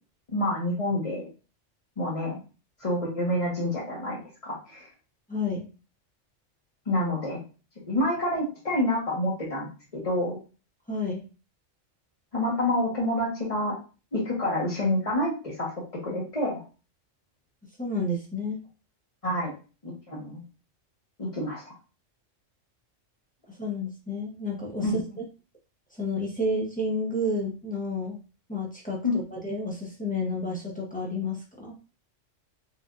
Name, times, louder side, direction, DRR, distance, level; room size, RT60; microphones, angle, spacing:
voice 1, 0.3-1.3 2.0-2.4 2.8-4.9 6.9-7.4 7.9-10.4 12.3-13.8 14.1-15.7 16.0-16.6 19.2-19.5 19.8-20.4 21.2-21.7 24.8-25.0 29.0-29.1, left 1 dB, 30° left, -6 dB, 1.0 m, -28 dB
voice 2, 5.3-5.7 10.9-11.2 17.8-18.6 23.5-25.0 25.9-28.2 28.5-31.7, left 2 dB, 10° left, -3 dB, 0.7 m, -30 dB
4.2 x 2.4 x 2.5 m, 0.34 s
omnidirectional pair, 1.3 m